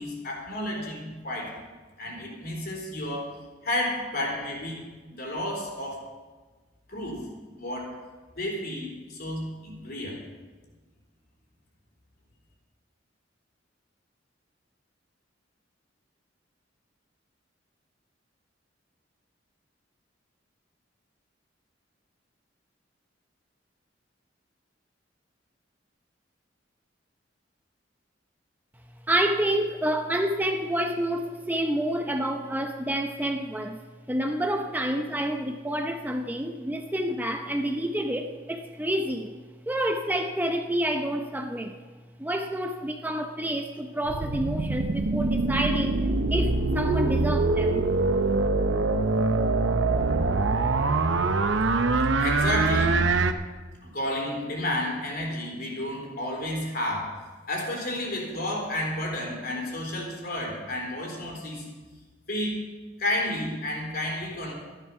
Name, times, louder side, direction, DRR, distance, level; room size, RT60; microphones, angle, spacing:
voice 1, 0.0-1.6 2.0-3.4 3.6-6.1 6.9-7.3 7.6-8.0 8.4-10.2 52.2-53.0 53.8-57.2 57.5-61.7 62.3-62.7 63.0-64.5, left 1 dB, 55° left, 0 dB, 3.6 m, -31 dB
voice 2, 29.1-33.8 34.1-39.4 39.7-41.7 42.2-46.0 46.3-47.8, right 1 dB, 10° right, 4 dB, 0.7 m, -28 dB
sound 1, 44.0-53.3, right 3 dB, 75° right, 0.8 m, -24 dB
13.0 x 11.5 x 5.9 m, 1.3 s
head